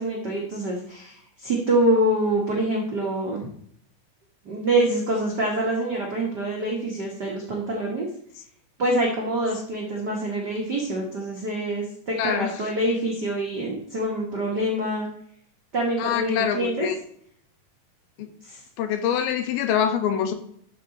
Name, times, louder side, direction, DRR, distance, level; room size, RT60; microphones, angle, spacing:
voice 1, 0.0-3.5 4.4-8.1 8.8-15.1 15.7-16.9 18.4-18.6, right 1 dB, 90° right, -1 dB, 0.9 m, -25 dB
voice 2, 12.2-12.6 16.0-17.0 18.2-18.3 18.8-20.3, left 8 dB, 80° left, 8 dB, 2.8 m, -25 dB
12.0 x 5.5 x 3.9 m, 0.65 s
omnidirectional pair, 4.4 m